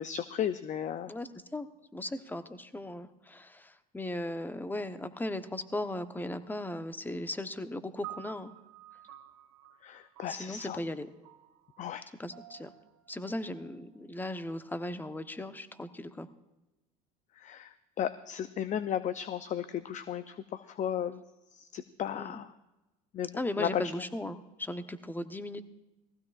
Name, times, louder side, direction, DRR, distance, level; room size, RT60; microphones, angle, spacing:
voice 1, 0.0-1.1 9.8-10.8 11.8-12.1 17.4-21.2 21.5-22.5 23.1-23.8, left 9 dB, 40° left, 13 dB, 0.6 m, -35 dB
voice 2, 1.1-1.7 1.9-8.5 10.3-11.1 12.2-12.7 13.1-16.3 22.2-22.4 23.4-25.6, left 1 dB, 10° left, 10 dB, 0.9 m, -37 dB
sound 1, 8.0-14.5, right 14 dB, 85° right, 1.5 m, -51 dB
18.5 x 15.5 x 2.5 m, 1.0 s
supercardioid pair, 85°, 19 cm